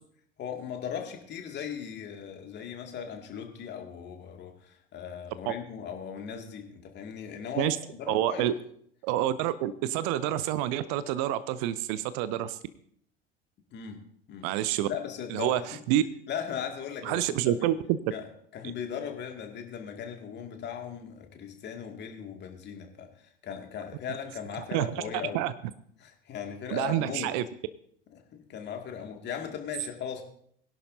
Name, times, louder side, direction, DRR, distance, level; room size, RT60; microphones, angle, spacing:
voice 1, 0.4-8.5 13.7-14.0 14.3-14.5 14.8-15.8 16.3-17.7 18.1-25.4 26.0-27.3 28.1-30.2, left 7 dB, 35° left, 3 dB, 2.2 m, -38 dB
voice 2, 8.1-8.5 9.0-12.6 14.4-14.9 15.3-16.0 17.0-18.0 24.7-25.0 25.3-25.5 26.7-27.4, right 12 dB, 50° right, 16 dB, 0.7 m, -28 dB
21.0 x 11.0 x 2.7 m, 0.65 s
figure-of-eight pair, 70°, 30 cm